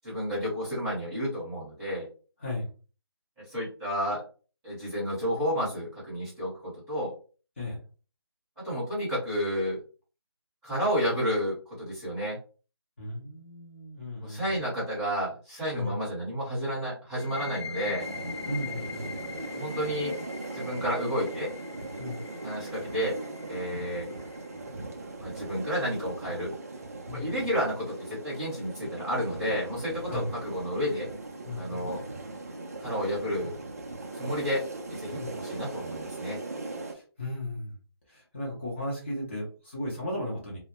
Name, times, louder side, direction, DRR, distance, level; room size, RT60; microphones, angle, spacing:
voice 1, 0.0-2.1 3.5-4.2 4.6-7.1 8.6-9.8 10.6-12.4 14.2-18.1 19.5-20.1 20.5-21.5 22.4-23.2 23.5-24.1 25.2-26.5 27.1-31.1 31.6-32.0 32.8-33.5 34.2-34.6 34.9-36.4, equal, 10° right, -9 dB, 0.8 m, -31 dB
voice 2, 13.0-14.6 15.7-15.9 18.5-19.2 22.0-22.2 27.1-27.3 30.1-30.3 31.4-31.8 35.1-35.3 36.9-37.7 38.1-40.6, left 1 dB, 25° left, -5 dB, 0.7 m, -35 dB
sound 1, 17.1-24.6, left 6 dB, 80° left, 0.4 m, -42 dB
sound 2, 18.0-36.9, right 2 dB, 35° right, 0.4 m, -39 dB
2.2 x 2.0 x 2.8 m, 0.37 s
figure-of-eight pair, 170°, 14 cm